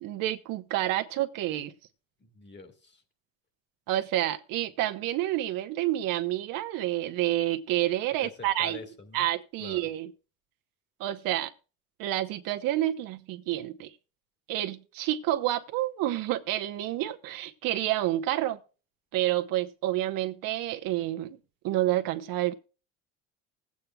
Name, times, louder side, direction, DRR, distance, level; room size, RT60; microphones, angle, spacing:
voice 1, 0.0-1.7 3.9-8.8 9.1-10.1 11.0-11.5 12.0-13.9 14.5-18.6 19.1-21.4 21.6-22.5, right 14 dB, 65° right, 1.0 m, -29 dB
voice 2, 2.2-3.0 8.2-9.3 9.6-9.9, left 3 dB, 30° left, 1.8 m, -45 dB
20.5 x 8.5 x 2.2 m
supercardioid pair, 85°, 36 cm